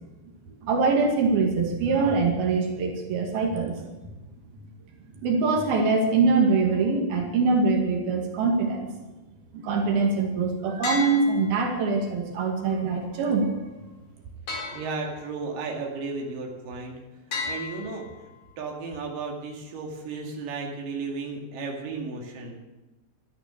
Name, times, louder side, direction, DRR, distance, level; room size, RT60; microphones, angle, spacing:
voice 1, 0.6-3.8 5.2-8.9 9.5-13.5, right 4 dB, 85° right, 1 dB, 4.2 m, -23 dB
sound 1, 10.8-12.1 14.5-15.6 17.3-18.5, left 3 dB, 60° left, 5.6 m, -35 dB
voice 2, 14.7-17.0 17.3-18.3 18.6-22.6, right 4 dB, 70° right, 0 dB, 3.9 m, -34 dB
13.5 x 13.0 x 7.0 m, 1.1 s
omnidirectional pair, 4.2 m